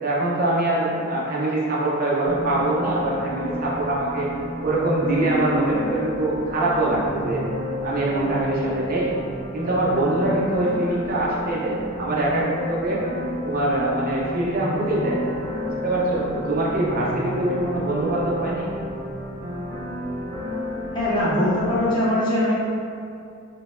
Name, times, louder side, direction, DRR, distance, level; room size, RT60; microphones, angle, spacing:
voice 1, 0.0-4.3 4.6-7.4 7.8-9.1 9.5-13.0 13.4-15.3 15.8-18.7, right 2 dB, 45° right, -5 dB, 0.6 m, -23 dB
sound 1, 2.3-21.9, left 1 dB, 70° right, 0.9 m, -31 dB
voice 2, 20.9-22.6, left 1 dB, 20° left, -10 dB, 0.8 m, -21 dB
3.8 x 2.0 x 2.5 m, 2.5 s
head